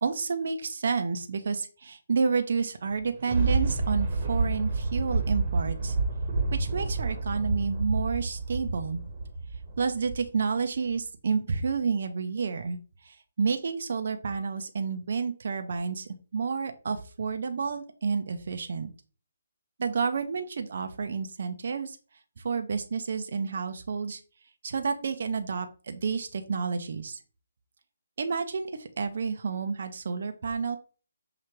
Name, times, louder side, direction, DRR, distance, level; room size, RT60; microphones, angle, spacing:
voice 1, 0.0-6.0 6.5-9.0 9.8-12.8 13.0-18.9 19.8-22.0 22.4-24.2 24.6-27.2 28.2-30.8, right 5 dB, 60° right, 6 dB, 0.5 m, -30 dB
Thunder, 2.9-10.4 10.9-11.0, right 3 dB, 35° right, 1.0 m, -29 dB
5.7 x 2.4 x 3.1 m, 0.37 s
figure-of-eight pair, 150°, 0 cm